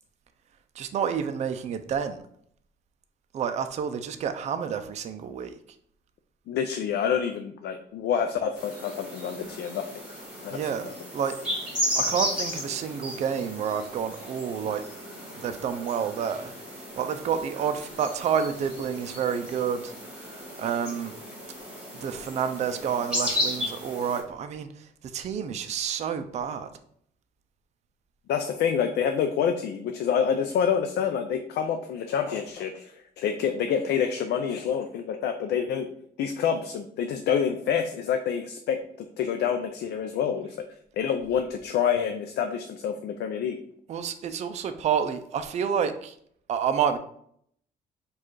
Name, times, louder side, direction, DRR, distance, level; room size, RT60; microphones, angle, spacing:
voice 1, 0.7-2.2 3.3-5.6 10.5-10.9 11.1-14.8 15.4-19.9 20.6-21.1 21.9-26.7 43.9-46.2 46.5-47.0, right 7 dB, 40° right, 8 dB, 0.4 m, -29 dB
voice 2, 6.5-9.9 10.4-10.9 28.3-35.9 36.2-38.8 39.2-40.6 41.0-43.6, left 7 dB, 75° left, 6 dB, 0.4 m, -27 dB
sound 1, 8.6-24.2, equal, 5° right, 1.6 m, -34 dB
4.6 x 2.4 x 4.5 m, 0.66 s
cardioid pair, 150°, 18 cm